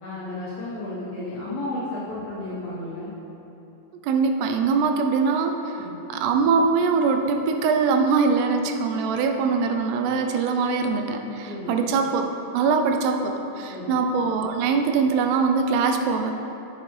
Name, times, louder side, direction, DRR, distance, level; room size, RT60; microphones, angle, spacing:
voice 1, 0.0-3.1 5.7-6.0 11.5-11.8 13.7-13.9, left 2 dB, 65° left, -9 dB, 2.7 m, -33 dB
voice 2, 4.0-5.8 6.1-12.2 12.5-16.3, right 5 dB, 85° right, 5 dB, 2.7 m, -22 dB
8.7 x 8.0 x 3.2 m, 3.0 s
omnidirectional pair, 4.7 m